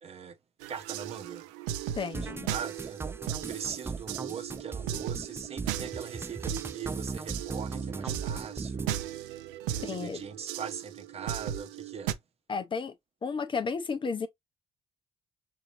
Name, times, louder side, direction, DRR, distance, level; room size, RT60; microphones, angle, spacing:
voice 1, 0.0-0.4 0.7-1.5 2.2-3.0 3.5-9.1 9.7-12.2, right 7 dB, 55° right, 0.9 m, -40 dB
sound 1, 0.6-12.1, right 11 dB, 85° right, 0.4 m, -37 dB
voice 2, 1.9-2.5 9.8-10.2 12.5-12.9 13.2-14.3, left 5 dB, 40° left, 0.7 m, -32 dB
sound 2, 2.1-8.9, right 4 dB, 20° right, 0.3 m, -38 dB
5.4 x 2.7 x 2.6 m
hypercardioid pair, 50°, 13 cm